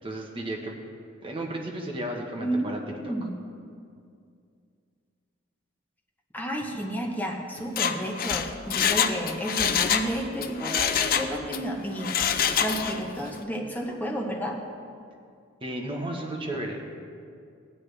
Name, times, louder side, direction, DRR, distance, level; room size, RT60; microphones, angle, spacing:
voice 1, 0.0-0.7 1.2-3.1 15.6-16.9, right 1 dB, 25° right, 0 dB, 1.2 m, -34 dB
voice 2, 2.4-3.4 6.3-14.6, equal, 10° left, 0 dB, 1.0 m, -31 dB
Mechanisms, 7.6-10.1 10.4-11.6 12.0-13.1 13.4-13.5, left 8 dB, 50° left, 0.5 m, -25 dB
16.0 x 10.0 x 3.4 m, 2.3 s
head